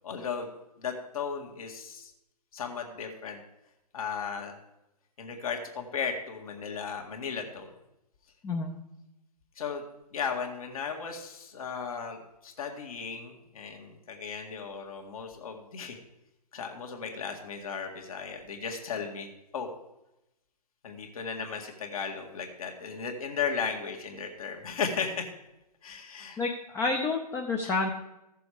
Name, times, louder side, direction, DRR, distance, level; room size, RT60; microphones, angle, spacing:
voice 1, 0.0-0.5 0.8-2.1 2.5-3.4 3.9-4.6 5.2-7.7 9.6-9.8 10.1-16.0 16.5-19.7 20.8-25.3 25.8-26.4 27.6-27.7, left 6 dB, 60° left, 2 dB, 1.9 m, -35 dB
voice 2, 26.4-27.9, left 3 dB, 10° left, 1 dB, 0.7 m, -29 dB
14.5 x 6.9 x 4.9 m, 0.91 s
hypercardioid pair, 135°, 21 cm